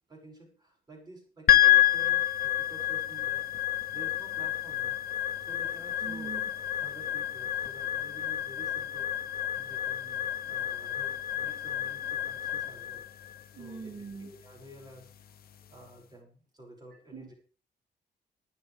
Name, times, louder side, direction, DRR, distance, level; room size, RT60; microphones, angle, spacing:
voice 1, 0.1-13.0 13.6-13.8 14.2-15.1 15.7-17.3, right 1 dB, 20° right, -1 dB, 5.9 m, -51 dB
sound 1, 1.5-15.8, left 13 dB, 55° left, 0.9 m, -29 dB
voice 2, 6.0-6.4 13.5-14.3 17.1-17.3, right 5 dB, 55° right, 0 dB, 2.6 m, -42 dB
21.5 x 9.5 x 3.4 m, 0.38 s
wide cardioid pair, 175°, 18 cm